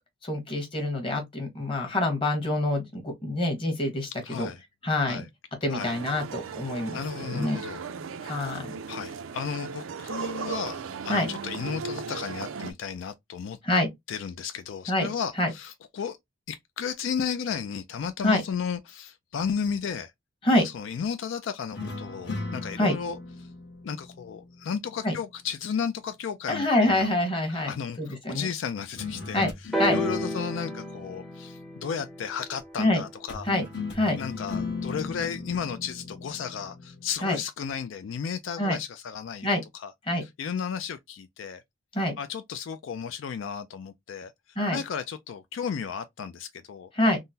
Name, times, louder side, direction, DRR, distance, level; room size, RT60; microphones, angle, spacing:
voice 1, 0.2-4.1 4.4-4.5 4.8-5.2 5.6-7.0 7.3-7.6 8.2-8.7 11.1-11.3 13.6-13.9 14.9-15.1 15.4-15.5 18.2-18.4 20.4-20.6 22.8-22.9 25.0-25.1 26.5-27.7 28.0-28.5 29.3-29.5 29.8-30.0 32.8-33.0 33.4-33.6 33.9-34.2 37.2-37.4 38.6-38.8 39.4-39.6 40.1-40.2 41.9-42.1 44.6-44.8 46.9-47.2, left 1 dB, 25° left, 1.1 m, -25 dB
voice 2, 4.2-4.6 5.1-5.3 5.7-5.9 6.9-7.8 8.9-13.6 14.1-16.2 16.5-20.1 20.6-23.2 23.8-27.1 27.5-29.4 29.9-33.5 34.2-39.9 40.4-41.6 42.2-44.3 44.7-46.9, left 7 dB, 75° left, 0.3 m, -34 dB
sound 1, 5.8-12.7, right 5 dB, 85° right, 0.4 m, -37 dB
sound 2, 21.7-25.1 29.0-32.4 33.3-37.1, left 4 dB, 60° left, 1.1 m, -37 dB
sound 3, 29.7-33.6 34.5-34.6, right 1 dB, ahead, 0.5 m, -33 dB
3.7 x 2.0 x 2.6 m
head